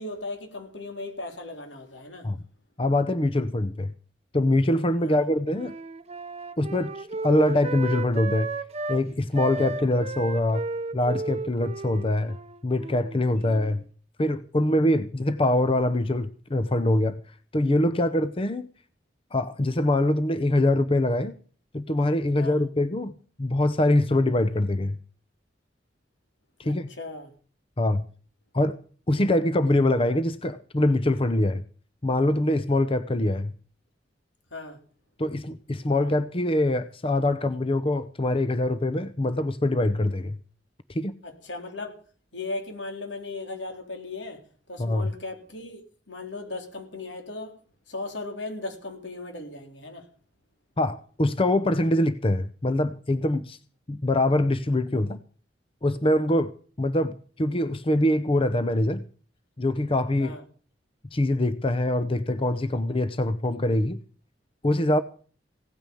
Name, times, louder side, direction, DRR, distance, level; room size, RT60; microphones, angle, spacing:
voice 1, 0.0-2.3 5.0-5.2 13.6-13.7 22.4-22.6 26.6-27.3 34.5-34.8 41.2-42.0 42.3-44.4 44.7-45.8 46.1-47.5 47.9-50.1 60.2-60.4, left 2 dB, 85° left, 3.7 m, -37 dB
voice 2, 2.8-3.9 4.3-5.7 6.6-8.5 8.9-10.6 10.9-12.4 12.6-13.8 14.2-17.2 17.5-18.7 19.3-21.3 21.7-23.1 23.4-25.0 26.6-26.9 27.8-28.0 28.5-28.8 29.1-31.6 32.0-33.5 35.2-40.4 40.9-41.2 44.8-45.1 50.8-53.6 53.9-55.2 55.8-56.5 56.8-59.0 59.6-60.4 61.1-64.0 64.6-65.0, left 1 dB, 30° left, 0.7 m, -24 dB
Wind instrument woodwind instrument, 5.0-9.0 9.3-13.8, right 3 dB, 35° right, 0.8 m, -34 dB
17.0 x 9.3 x 7.0 m
head